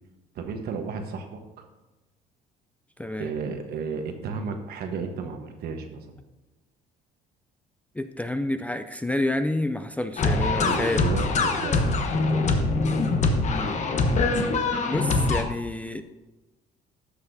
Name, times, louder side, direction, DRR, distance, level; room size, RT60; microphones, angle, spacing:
voice 1, 0.3-1.4 3.2-6.0 10.6-12.0, right 5 dB, 70° right, 5 dB, 1.1 m, -33 dB
voice 2, 3.0-3.3 7.9-11.1 13.5-13.7 14.8-16.0, left 1 dB, 10° left, 8 dB, 0.4 m, -29 dB
sound 1, 10.2-15.4, left 3 dB, 45° left, 0.9 m, -23 dB
13.0 x 5.8 x 2.7 m, 1.1 s
cardioid pair, 110°, 17 cm